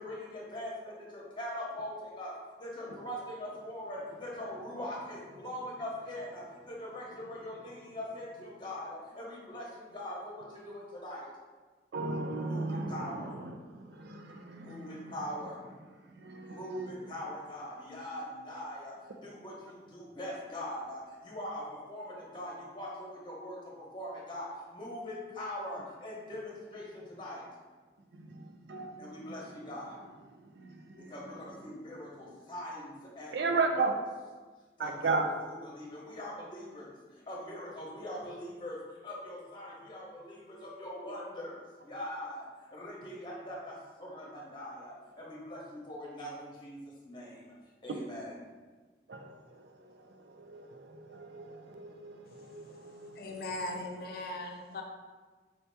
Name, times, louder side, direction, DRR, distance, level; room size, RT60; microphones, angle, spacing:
voice 1, 0.0-11.3 12.4-13.3 14.5-15.6 16.4-27.4 29.0-30.0 31.0-33.6 34.8-38.8 39.0-47.5 47.8-48.3, left 1 dB, 25° left, -4 dB, 1.0 m, -42 dB
voice 2, 11.9-15.1 16.2-16.8 28.1-29.3 30.6-31.1 33.3-33.9 34.8-35.3 47.9-48.0 49.1-49.3 50.2-53.2, right 3 dB, 75° right, 5 dB, 0.4 m, -35 dB
voice 3, 52.3-54.8, left 1 dB, 55° left, 2 dB, 0.5 m, -40 dB
4.5 x 2.8 x 3.4 m, 1.4 s
head